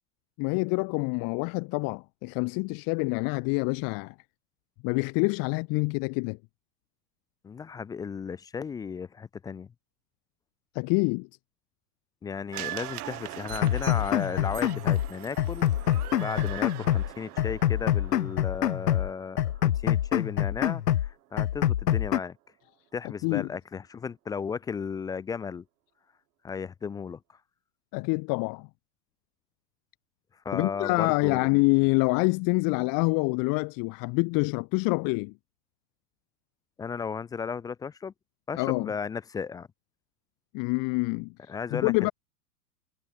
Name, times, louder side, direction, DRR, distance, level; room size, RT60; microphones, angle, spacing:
voice 1, 0.4-4.1 4.8-6.4 10.7-11.3 23.2-23.5 27.9-28.7 30.5-35.3 38.5-38.9 40.5-42.1, left 31 dB, 45° left, 1.6 m, -26 dB
voice 2, 7.4-9.7 12.2-22.4 22.9-25.6 26.4-27.2 30.5-31.5 36.8-38.1 38.5-39.7 41.5-42.1, left 6 dB, 10° left, 0.4 m, -35 dB
sound 1, 12.5-20.8 21.1-21.2, right 14 dB, 65° right, 5.4 m, -42 dB
sound 2, 13.5-15.1 15.4-17.1 17.4-19.1 19.4-21.1 21.4-22.2, left 11 dB, 75° left, 1.1 m, -26 dB
hypercardioid pair, 95°, 48 cm